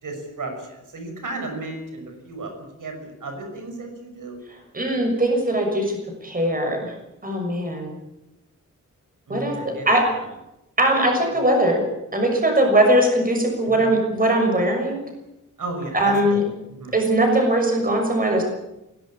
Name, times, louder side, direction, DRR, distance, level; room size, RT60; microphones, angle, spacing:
voice 1, 0.0-2.5 2.8-4.4 9.3-9.9 13.8-13.9 15.6-16.4 16.8-17.0, right 2 dB, 85° right, 4 dB, 6.0 m, -34 dB
voice 2, 4.7-6.0 6.2-6.9 7.2-7.9 9.3-10.0 10.8-11.8 12.1-15.0 15.9-16.4 16.9-18.4, right 1 dB, 30° right, 3 dB, 6.3 m, -20 dB
21.5 x 18.0 x 8.8 m, 0.91 s
wide cardioid pair, 165°, 31 cm